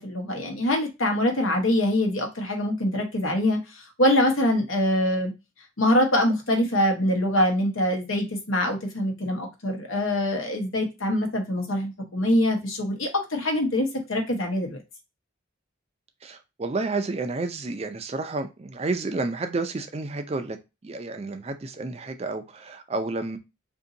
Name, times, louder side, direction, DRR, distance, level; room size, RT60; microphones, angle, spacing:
voice 1, 0.0-5.3 5.8-14.8, left 1 dB, 80° left, 1.0 m, -24 dB
voice 2, 16.2-20.6 20.8-23.4, right 3 dB, 30° right, 0.4 m, -30 dB
2.7 x 2.6 x 3.8 m
head